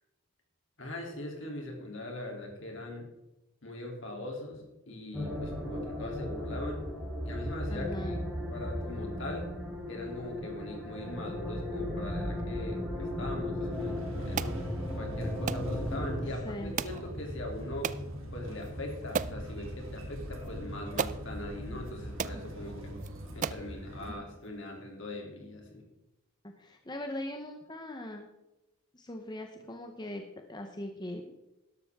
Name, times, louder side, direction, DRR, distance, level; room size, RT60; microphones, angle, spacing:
voice 1, 0.8-3.1 3.6-6.8 7.2-8.2 8.5-9.5 9.9-14.6 15.0-17.9 18.3-23.0 23.3-25.8, left 1 dB, 60° left, 1 dB, 3.0 m, -41 dB
sound 1, 5.1-16.3, left 1 dB, 5° right, 3.6 m, -36 dB
voice 2, 7.7-8.2 16.4-16.8 26.6-28.3 28.9-30.2 30.5-31.4, left 1 dB, 20° left, 4 dB, 0.8 m, -40 dB
sound 2, 13.7-24.1, equal, 65° right, 2.9 m, -41 dB
sound 3, 14.4-14.6 15.5-15.7 16.8-17.0 17.8-18.0 18.6-18.7 19.1-19.4 20.4-20.5 21.0-21.2 21.9-22.0 22.2-22.4 23.0-23.1 23.4-23.7, right 6 dB, 35° right, 0.3 m, -33 dB
12.5 x 12.0 x 3.6 m, 0.98 s
head